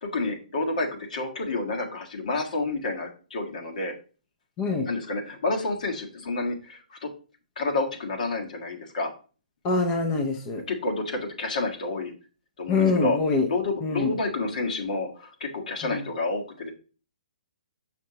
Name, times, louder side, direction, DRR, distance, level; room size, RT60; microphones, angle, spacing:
voice 1, 0.0-3.9 4.8-7.1 7.6-9.1 10.7-12.1 12.6-16.7, left 2 dB, 60° left, 2 dB, 1.6 m, -29 dB
voice 2, 9.6-10.6 12.7-13.5 13.8-14.1 15.9-16.0, left 4 dB, 25° left, 4 dB, 0.8 m, -24 dB
6.3 x 5.9 x 2.9 m, 0.36 s
figure-of-eight pair, 130°, 5 cm